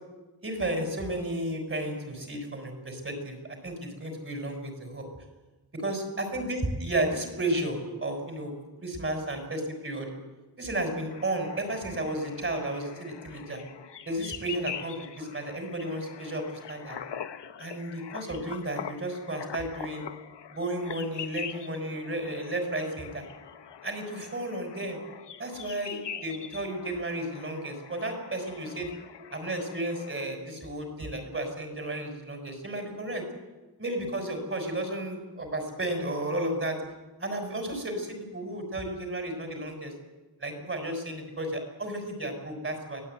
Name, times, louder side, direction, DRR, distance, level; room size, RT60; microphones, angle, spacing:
voice 1, 0.4-5.1 5.7-8.5 8.8-10.1 10.6-13.6 14.1-17.0 17.6-20.0 20.5-23.2 23.8-25.0 25.4-28.9 29.3-33.2 33.8-36.8 37.2-39.9 40.4-43.0, right 1 dB, 30° right, 4 dB, 6.4 m, -33 dB
sound 1, 11.1-30.2, left 8 dB, 85° left, 1.3 m, -43 dB
23.5 x 17.5 x 9.6 m, 1.2 s
wide cardioid pair, 130°, 41 cm